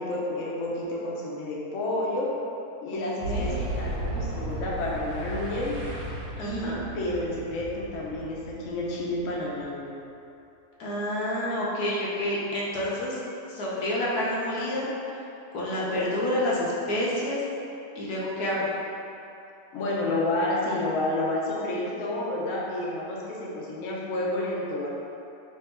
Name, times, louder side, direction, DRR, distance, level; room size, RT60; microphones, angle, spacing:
voice 1, 0.0-2.3 2.8-5.8 6.4-8.4 8.6-9.9 19.7-24.9, left 1 dB, 60° left, -5 dB, 1.0 m, -30 dB
voice 2, 3.2-3.5 6.4-6.8 10.8-13.2 13.6-14.9 15.5-17.4 18.0-18.7, left 1 dB, 80° left, -6 dB, 1.3 m, -28 dB
Boom, 3.2-9.8, right 1 dB, 90° right, 1.2 m, -35 dB
3.4 x 2.8 x 4.3 m, 2.8 s
omnidirectional pair, 1.6 m